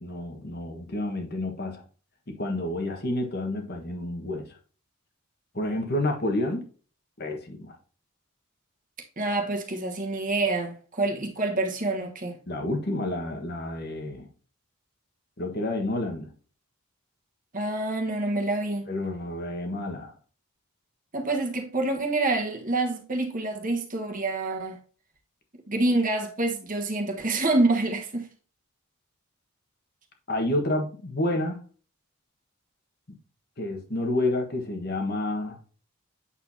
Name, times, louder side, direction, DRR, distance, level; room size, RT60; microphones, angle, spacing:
voice 1, 0.0-1.8 2.3-4.6 5.5-6.6 7.2-7.7 12.5-14.3 15.4-16.3 18.9-20.1 30.3-31.6 33.6-35.6, left 1 dB, 45° left, 1.4 m, -29 dB
voice 2, 9.2-12.4 17.5-18.9 21.1-24.8 25.7-28.3, right 2 dB, 35° right, 1.3 m, -27 dB
8.6 x 6.8 x 2.8 m
head